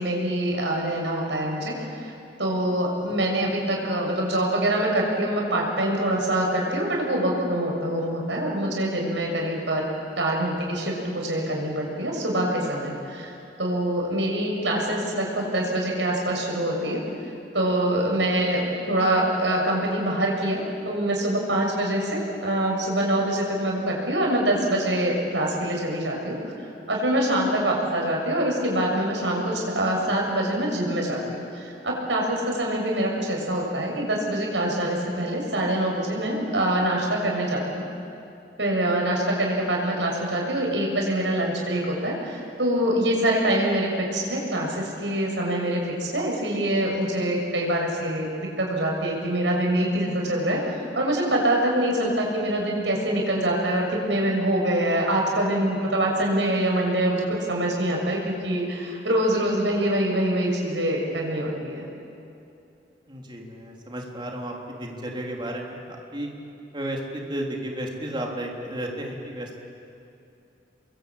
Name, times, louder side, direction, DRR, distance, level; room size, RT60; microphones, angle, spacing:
voice 1, 0.0-2.1 2.4-9.8 10.2-17.0 17.5-26.4 26.9-37.9 38.6-61.9, right 1 dB, 85° right, -1 dB, 6.8 m, -25 dB
voice 2, 63.1-64.5 64.8-66.3 66.7-69.5, right 1 dB, 25° right, -1 dB, 3.8 m, -33 dB
29.5 x 23.0 x 8.6 m, 2.7 s
head